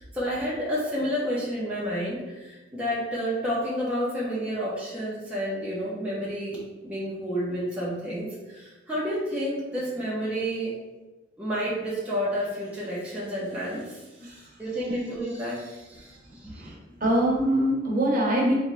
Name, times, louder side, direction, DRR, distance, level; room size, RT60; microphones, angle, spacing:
voice 1, 0.0-10.7 11.4-16.5, equal, 5° right, -8 dB, 0.8 m, -30 dB
voice 2, 16.5-18.5, right 1 dB, 45° right, -3 dB, 1.0 m, -24 dB
3.9 x 3.2 x 3.2 m, 1.1 s
head